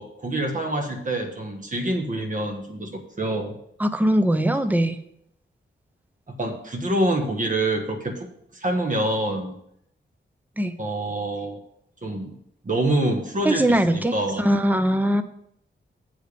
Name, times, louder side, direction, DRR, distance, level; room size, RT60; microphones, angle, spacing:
voice 1, 0.0-3.5 6.3-8.3 8.5-9.5 10.8-11.6 12.0-12.3 12.6-14.4, right 1 dB, 40° right, 4 dB, 1.4 m, -26 dB
voice 2, 3.8-5.0 10.6-10.7 13.4-15.2, right 1 dB, 10° right, 10 dB, 0.5 m, -21 dB
7.9 x 5.0 x 6.7 m, 0.75 s
wide cardioid pair, 145°, 20 cm